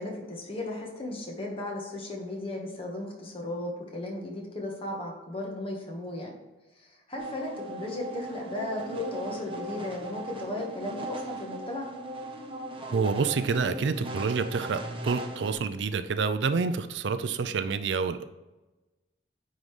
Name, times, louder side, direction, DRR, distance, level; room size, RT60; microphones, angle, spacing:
voice 1, 0.0-6.3 6.8-11.9, left 1 dB, 30° left, 0 dB, 1.4 m, -35 dB
sound 1, 7.2-15.5, right 1 dB, 30° right, 0.9 m, -38 dB
voice 2, 12.9-18.2, right 5 dB, 85° right, 11 dB, 0.4 m, -28 dB
9.2 x 3.8 x 3.3 m, 1.1 s
head